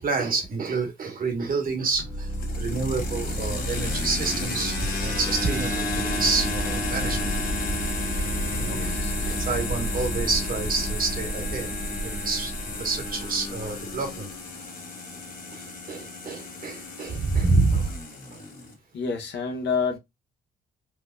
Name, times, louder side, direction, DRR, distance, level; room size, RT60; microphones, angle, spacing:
voice 1, 0.0-2.3 2.6-4.7 5.0-7.3 8.6-8.9 9.3-11.7 12.0-12.5 12.8-14.3 15.5-17.9, right 3 dB, 45° right, 1.2 m, -28 dB
sound 1, 1.9-14.2, right 1 dB, 10° left, 0.7 m, -32 dB
sound 2, 2.0-18.7, left 3 dB, 45° left, 1.5 m, -33 dB
voice 2, 8.5-9.4 18.9-20.0, left 5 dB, 65° left, 1.1 m, -29 dB
4.6 x 2.2 x 2.2 m
cardioid pair, 90°, 20 cm